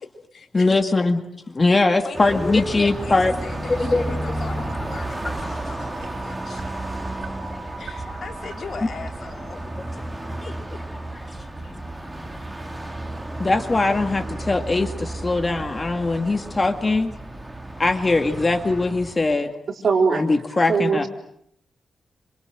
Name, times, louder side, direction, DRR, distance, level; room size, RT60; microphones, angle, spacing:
voice 1, 0.0-1.0 2.0-6.7 7.8-10.0 10.4-10.5 11.6-11.7, left 5 dB, 55° left, 5 dB, 3.6 m, -39 dB
voice 2, 0.5-1.2 1.5-3.3 3.7-4.0 5.2-5.3 7.6-7.7 8.1-8.2 9.8-9.9 10.4-10.5 11.3-11.4 13.4-17.1 17.8-19.5 20.1-21.0, left 3 dB, 25° left, 7 dB, 2.0 m, -21 dB
Car passing by, 2.1-19.4, right 1 dB, 10° right, 2.4 m, -32 dB
sound 1, 4.5-9.6, right 4 dB, 85° right, 3.8 m, -41 dB
voice 3, 19.8-20.2 20.7-21.1, right 5 dB, 55° right, 3 dB, 4.4 m, -20 dB
28.5 x 27.0 x 7.8 m, 0.72 s
wide cardioid pair, 135°, 0 cm